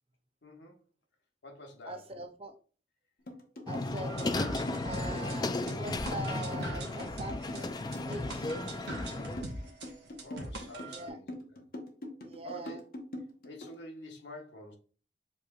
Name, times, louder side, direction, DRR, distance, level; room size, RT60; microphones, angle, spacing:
voice 1, 0.4-0.8 1.4-2.0 10.2-11.3 11.5-11.6 12.4-12.8 13.4-14.8, left 1 dB, 85° left, 1.1 m, -47 dB
voice 2, 1.9-2.6 3.7-4.4 4.8-7.8 8.1-8.5 10.9-11.2 12.2-12.8, right 2 dB, 35° right, 0.5 m, -42 dB
sound 1, 3.3-13.8, left 1 dB, 55° left, 0.9 m, -43 dB
sound 2, 3.7-9.4, left 2 dB, 25° left, 0.3 m, -35 dB
sound 3, 4.1-11.1, right 2 dB, 70° right, 1.0 m, -42 dB
7.0 x 3.1 x 2.3 m
head